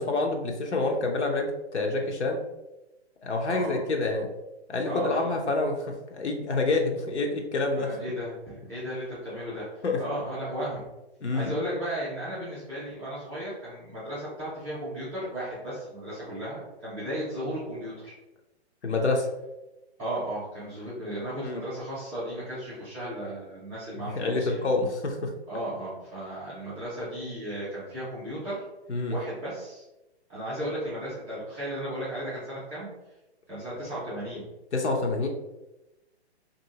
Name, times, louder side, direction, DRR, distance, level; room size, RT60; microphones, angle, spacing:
voice 1, 0.0-2.4 3.2-4.3 4.7-8.0 9.8-10.0 11.2-11.5 18.8-19.3 21.4-21.6 24.0-25.3 28.9-29.2 34.7-35.3, left 3 dB, 85° left, 2 dB, 0.7 m, -27 dB
voice 2, 3.5-3.8 4.9-5.4 7.7-10.9 11.3-18.1 20.0-24.6 25.5-28.6 29.1-29.8 30.3-32.9 33.5-34.5, right 1 dB, 5° right, -14 dB, 0.3 m, -35 dB
2.7 x 2.6 x 2.7 m, 0.98 s
hypercardioid pair, 135°, 33 cm